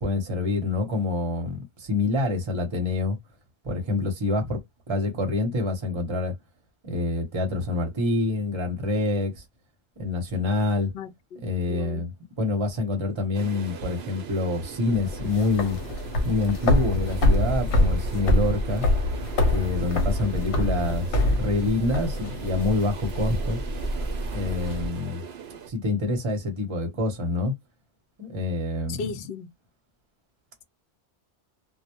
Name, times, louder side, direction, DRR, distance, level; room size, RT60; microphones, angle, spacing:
voice 1, 0.0-3.2 3.6-4.6 4.9-6.3 6.8-9.4 10.0-10.9 11.4-15.8 16.2-18.9 19.5-23.6 24.3-25.2 25.7-27.5 28.2-29.0, left 2 dB, 30° right, 0.7 m, -26 dB
voice 2, 10.9-12.0 28.9-29.5, left 5 dB, 65° left, 0.7 m, -36 dB
sound 1, 13.3-25.7, right 7 dB, 70° right, 0.8 m, -40 dB
sound 2, 14.9-24.9, left 1 dB, 80° left, 1.0 m, -25 dB
2.1 x 2.0 x 2.8 m
omnidirectional pair, 1.1 m